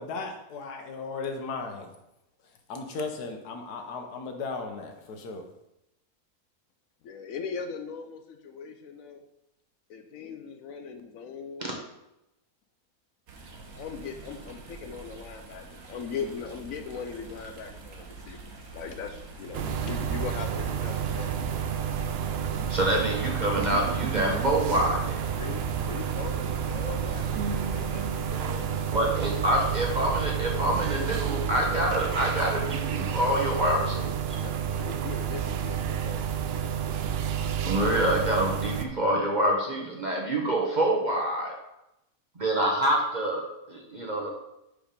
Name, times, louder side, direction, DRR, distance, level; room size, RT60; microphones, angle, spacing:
voice 1, 0.0-1.9 2.4-5.5, left 4 dB, 90° left, 5 dB, 1.4 m, -36 dB
voice 2, 7.0-9.2 9.9-11.7 13.8-21.3 25.3-28.7 34.3-36.2, left 6 dB, 65° left, 6 dB, 1.0 m, -39 dB
sound 1, 13.3-32.9, right 3 dB, 65° right, 1.4 m, -44 dB
sound 2, 19.5-38.9, right 8 dB, 85° right, 0.5 m, -30 dB
voice 3, 22.7-25.2 28.9-34.4 37.6-41.5 42.4-44.3, right 1 dB, 35° right, -1 dB, 0.9 m, -26 dB
5.1 x 5.0 x 5.1 m, 0.88 s
omnidirectional pair, 1.6 m